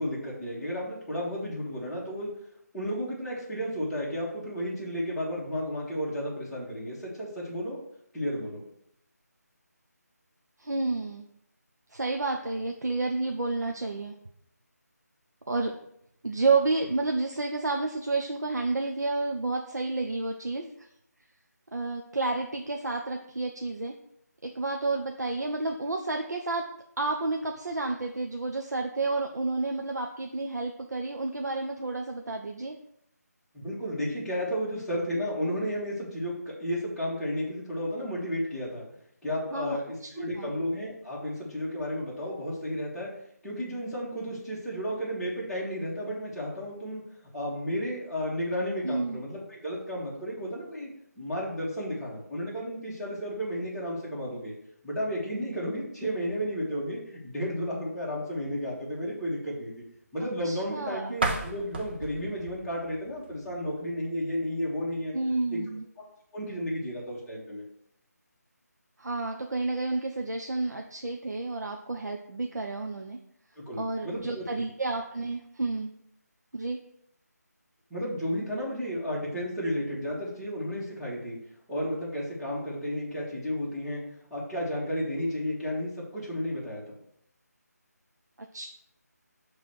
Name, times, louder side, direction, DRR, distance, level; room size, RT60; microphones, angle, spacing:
voice 1, 0.0-2.3 2.7-7.8 8.1-8.6 33.5-38.9 39.2-43.1 43.4-47.0 47.3-50.9 51.2-54.5 54.8-59.7 60.1-65.1 65.5-65.6 66.3-67.6 73.7-74.4 77.9-81.4 81.7-84.0 84.3-87.0, equal, ahead, -12 dB, 1.8 m, -32 dB
voice 2, 10.6-11.3 11.9-14.1 15.5-15.7 16.2-20.9 21.7-23.9 24.4-26.6 27.0-32.8 39.5-39.8 40.2-40.5 48.8-49.2 60.4-61.1 65.1-65.8 69.0-73.2 73.8-75.9 76.5-76.8 88.5-88.7, right 3 dB, 75° right, 2 dB, 0.8 m, -30 dB
sound 1, 61.1-64.0, right 3 dB, 35° right, 0.9 m, -34 dB
7.0 x 3.4 x 6.2 m, 0.73 s
figure-of-eight pair, 160°, 9 cm